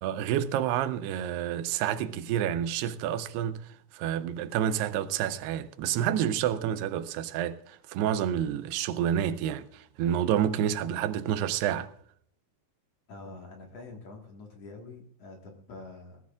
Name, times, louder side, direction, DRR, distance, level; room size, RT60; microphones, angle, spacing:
voice 1, 0.0-3.7 3.9-11.9, right 10 dB, 90° right, 2.8 m, -29 dB
voice 2, 13.1-16.2, left 3 dB, 50° left, 2.3 m, -46 dB
19.5 x 15.5 x 2.4 m
omnidirectional pair, 4.6 m